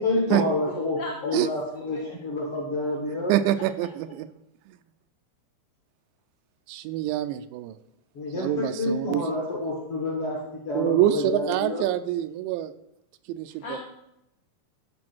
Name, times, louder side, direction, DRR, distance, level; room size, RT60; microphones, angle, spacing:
voice 1, 0.0-3.3 8.2-11.9, left 2 dB, 55° left, -2 dB, 1.7 m, -28 dB
voice 2, 0.7-1.4 1.7-2.2 13.6-13.8, left 3 dB, 75° left, 0 dB, 1.8 m, -36 dB
voice 3, 3.3-4.3 4.7-4.8 6.7-7.8 8.4-9.3 10.7-12.7 13.3-13.8, right 12 dB, 85° right, 11 dB, 2.8 m, -26 dB
13.5 x 4.7 x 6.1 m, 0.84 s
omnidirectional pair, 5.2 m